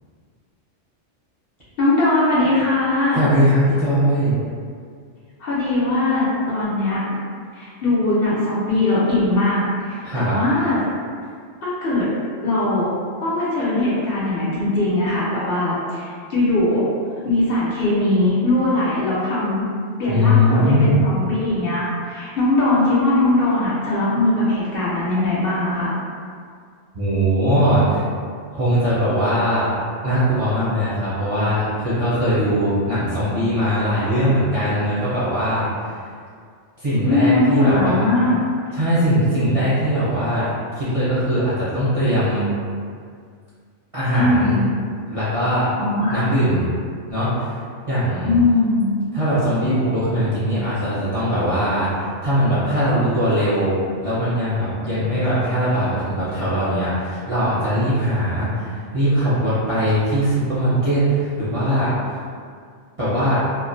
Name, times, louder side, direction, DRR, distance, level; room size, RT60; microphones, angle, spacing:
voice 1, 1.8-3.3 5.4-7.2 7.5-10.8 11.6-12.1 12.4-12.9 13.2-16.9 17.2-19.6 20.0-25.9 37.1-38.4 44.2-44.7 45.8-46.2 48.2-48.9, left 2 dB, 60° left, -8 dB, 0.7 m, -20 dB
voice 2, 3.1-4.3 10.0-10.4 20.1-20.9 26.9-28.0 28.5-29.7 30.0-36.0 36.8-38.1 38.7-40.5 40.8-42.5 43.9-44.6 45.1-45.7 46.1-46.7 47.1-47.6 47.9-48.3 49.1-53.8 54.0-61.9 63.0-63.4, equal, 40° right, -12 dB, 0.5 m, -20 dB
2.4 x 2.0 x 2.5 m, 2.1 s
omnidirectional pair, 1.2 m